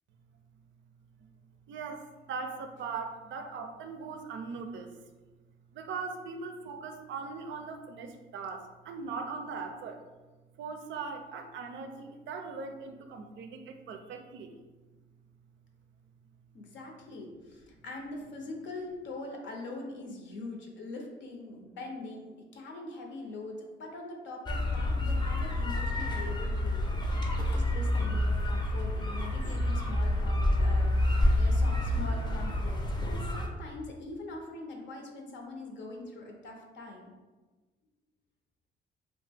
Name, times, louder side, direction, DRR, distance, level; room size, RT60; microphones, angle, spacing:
voice 1, 1.7-4.9 5.7-10.0 10.6-14.5, right 4 dB, 75° right, 6 dB, 0.4 m, -40 dB
voice 2, 16.5-37.1, left 2 dB, 65° left, 1 dB, 0.6 m, -43 dB
sound 1, 24.5-33.5, left 1 dB, 20° left, 0.5 m, -28 dB
2.8 x 2.1 x 3.3 m, 1.3 s
cardioid pair, 90°, 20 cm